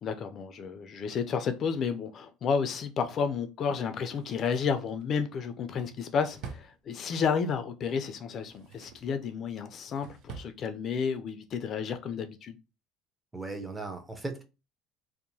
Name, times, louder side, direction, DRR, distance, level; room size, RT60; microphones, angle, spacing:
voice 1, 0.0-12.6, left 6 dB, 45° left, 0.3 m, -31 dB
Drawer open or close, 4.1-7.4 8.2-9.2 9.6-10.6 10.9-11.0, right 5 dB, 65° right, 0.5 m, -47 dB
voice 2, 13.3-14.4, right 3 dB, 15° right, 0.5 m, -37 dB
2.8 x 2.0 x 2.6 m
supercardioid pair, 110°, 0 cm